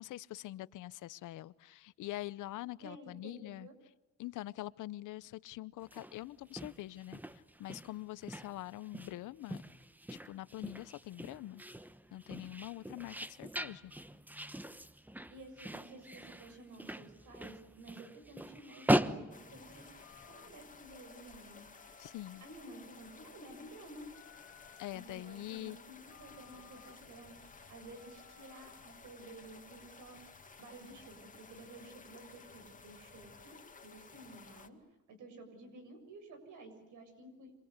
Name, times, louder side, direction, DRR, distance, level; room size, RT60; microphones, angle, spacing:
voice 1, 0.0-3.7 4.2-9.6 10.1-11.6 12.1-13.9 22.0-22.4 24.8-25.8, left 15 dB, 85° left, 0.9 m, -44 dB
voice 2, 2.8-3.7 15.3-19.9 20.3-21.6 22.4-24.1 24.9-30.2 30.6-33.6 33.8-34.8 35.1-37.5, right 2 dB, 80° right, 7.2 m, -52 dB
sound 1, 5.8-20.3, right 1 dB, 5° right, 1.1 m, -40 dB
sound 2, 19.3-34.7, left 4 dB, 25° left, 2.3 m, -56 dB
Telephone, 20.0-29.6, left 10 dB, 60° left, 2.2 m, -63 dB
27.5 x 26.5 x 8.2 m
cardioid pair, 90°, 30 cm